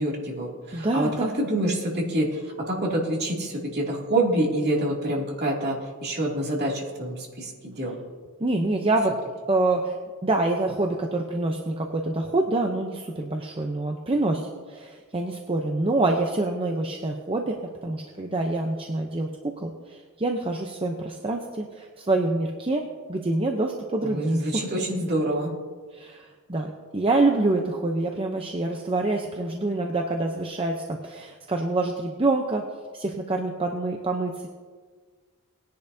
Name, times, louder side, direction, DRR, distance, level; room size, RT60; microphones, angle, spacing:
voice 1, 0.0-1.1 1.4-8.0 24.0-25.5, right 1 dB, 50° right, -2 dB, 2.5 m, -27 dB
voice 2, 0.7-1.3 8.4-9.1 9.5-10.0 10.2-24.6 25.9-32.6 32.9-34.5, right 2 dB, 25° right, 2 dB, 0.7 m, -26 dB
19.5 x 10.5 x 2.7 m, 1.5 s
head